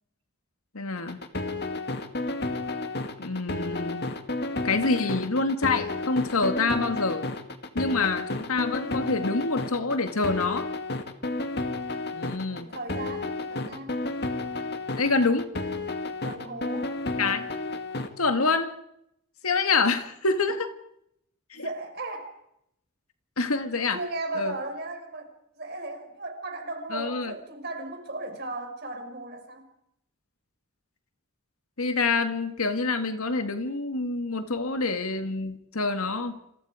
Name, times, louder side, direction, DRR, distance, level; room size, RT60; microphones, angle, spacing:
voice 1, 0.7-1.2 3.2-4.1 4.6-7.2 7.7-10.7 12.1-12.7 15.0-15.5 17.2-17.5 18.2-18.7 19.4-20.7 21.5-21.7 23.4-24.0 24.4-24.5 26.9-27.3 31.8-36.4, left 3 dB, 90° left, 8 dB, 2.1 m, -26 dB
sound 1, 1.0-18.1, left 2 dB, 50° left, 2.2 m, -31 dB
voice 2, 12.5-14.0 16.2-16.9 21.5-22.3 23.9-29.7, right 2 dB, 50° right, 5 dB, 5.5 m, -36 dB
28.5 x 28.0 x 5.1 m, 0.76 s
head